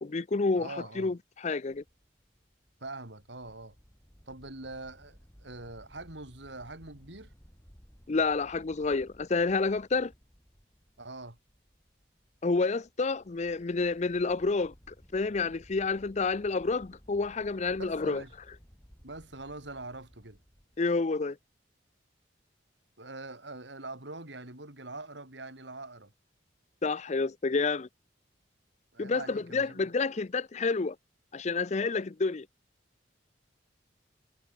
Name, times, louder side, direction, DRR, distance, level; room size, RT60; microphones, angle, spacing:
voice 1, 0.0-1.8 8.1-10.1 12.4-18.2 20.8-21.4 26.8-27.9 29.0-31.0 31.3-32.5, left 4 dB, 35° left, 0.5 m, -29 dB
voice 2, 0.6-1.1 2.8-3.7 4.3-7.3 11.0-11.4 17.8-18.3 19.0-20.4 23.0-26.1 28.9-29.8, right 2 dB, 70° right, 4.4 m, -43 dB
sound 1, 1.7-21.0, equal, 15° left, 6.5 m, -58 dB
head